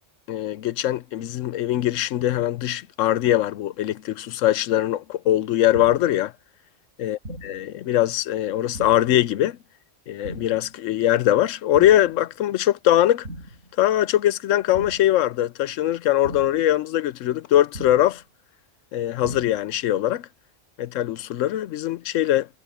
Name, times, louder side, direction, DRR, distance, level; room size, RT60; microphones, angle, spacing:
voice 1, 0.3-6.3 7.0-7.2 7.4-9.6 10.1-13.3 13.8-18.2 18.9-20.3 20.8-22.5, left 13 dB, 85° left, 1.0 m, -22 dB
sound 1, 5.7-6.2 7.2-7.7 8.7-9.2 10.2-10.7 11.7-12.2 13.2-13.7 14.7-15.2 16.2-16.7 17.7-18.2 19.2-19.7, right 1 dB, 80° right, 8.4 m, -39 dB
omnidirectional pair, 1.3 m